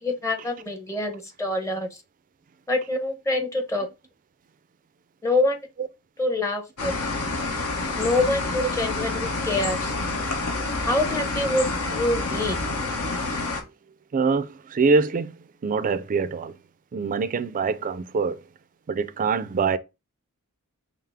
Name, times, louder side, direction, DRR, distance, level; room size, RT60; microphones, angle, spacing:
voice 1, 0.0-1.9 2.7-3.9 5.2-5.6 6.2-6.9 8.0-9.9 10.9-11.6 11.9-12.6, left 2 dB, 15° left, 0.7 m, -25 dB
sound 1, 6.8-13.6, left 3 dB, 75° left, 1.0 m, -28 dB
voice 2, 14.1-15.3 15.6-16.5 16.9-18.4 18.9-19.8, right 4 dB, 40° right, 0.4 m, -24 dB
5.5 x 2.0 x 3.4 m
head